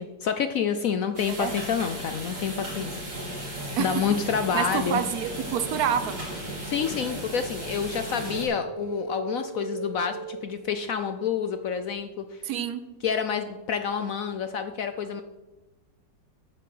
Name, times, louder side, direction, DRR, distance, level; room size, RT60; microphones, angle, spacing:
voice 1, 0.0-3.0 3.8-5.0 6.6-12.4 13.0-15.2, left 7 dB, 65° left, 9 dB, 0.9 m, -28 dB
sound 1, 1.2-8.5, right 1 dB, 75° right, 4.2 m, -36 dB
voice 2, 4.5-6.2 12.4-12.8, right 8 dB, 60° right, 11 dB, 1.3 m, -27 dB
sound 2, 8.0-11.2, right 2 dB, 35° left, 2.7 m, -38 dB
8.7 x 8.5 x 7.7 m, 1.1 s
omnidirectional pair, 2.0 m